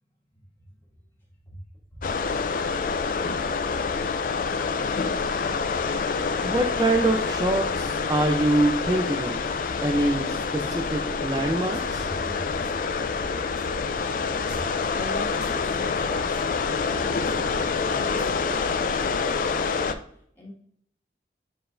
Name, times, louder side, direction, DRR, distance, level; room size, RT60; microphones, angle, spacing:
sound 1, 2.0-19.9, left 5 dB, 50° left, 0.4 m, -27 dB
voice 1, 6.4-9.4 9.8-12.1, right 1 dB, 20° right, 3 dB, 0.4 m, -24 dB
sound 2, 11.7-11.8 12.2-18.6, left 1 dB, 5° right, 1.3 m, -49 dB
voice 2, 11.9-12.8 14.1-19.8 20.4-20.5, equal, 10° left, -5 dB, 2.0 m, -42 dB
8.6 x 4.7 x 2.5 m, 0.67 s
head